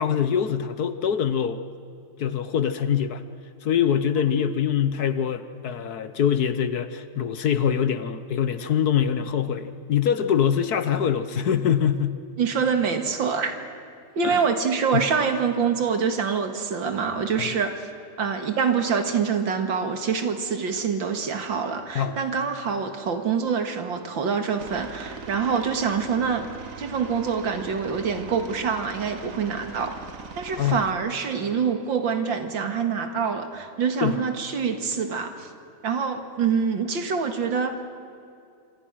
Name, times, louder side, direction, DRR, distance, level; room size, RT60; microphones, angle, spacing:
voice 1, 0.0-1.6 2.2-3.2 3.6-12.2 14.2-14.4 14.9-15.0 21.9-22.2 30.6-30.8 34.0-34.2, left 8 dB, 60° left, 12 dB, 1.4 m, -24 dB
voice 2, 12.4-13.6 14.2-17.9 18.2-26.5 26.8-30.0 30.4-35.5 35.8-37.9, right 6 dB, 80° right, 7 dB, 2.6 m, -25 dB
Aircraft, 24.6-30.9, right 5 dB, 45° right, 1.7 m, -41 dB
26.5 x 25.5 x 6.3 m, 2.5 s
omnidirectional pair, 2.1 m